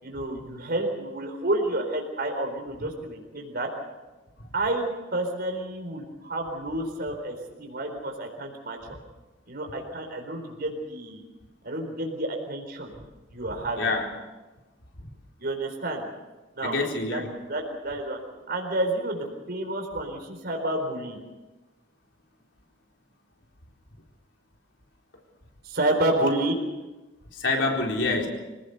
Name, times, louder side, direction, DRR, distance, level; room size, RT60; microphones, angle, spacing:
voice 1, 0.0-3.7 4.5-8.8 9.5-11.2 11.6-12.9 13.3-13.9 15.4-16.1 16.6-16.8 17.1-18.2 18.5-21.2 25.6-26.6, right 1 dB, 55° right, 3 dB, 4.1 m, -29 dB
voice 2, 13.8-14.1 16.6-17.3 27.3-28.3, left 3 dB, 75° left, 1 dB, 4.1 m, -26 dB
26.0 x 18.0 x 6.7 m, 1.1 s
head